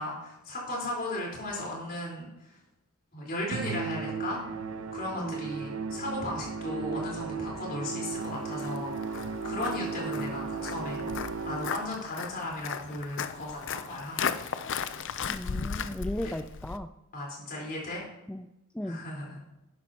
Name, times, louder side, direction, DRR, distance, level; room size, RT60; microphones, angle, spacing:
voice 1, 0.0-2.6 3.1-4.4 4.9-11.0 11.4-14.5 16.2-16.3 17.1-18.0 18.8-19.4, left 1 dB, 45° left, -3 dB, 4.1 m, -36 dB
Musical instrument, 3.5-12.0, right 4 dB, 80° right, 0.8 m, -35 dB
Walk footsteps, 8.1-16.8, left 6 dB, 60° left, 0.6 m, -36 dB
voice 2, 15.3-16.9 18.3-18.5 18.7-19.0, left 1 dB, 5° left, 9 dB, 0.3 m, -36 dB
12.5 x 9.7 x 2.9 m, 0.92 s
head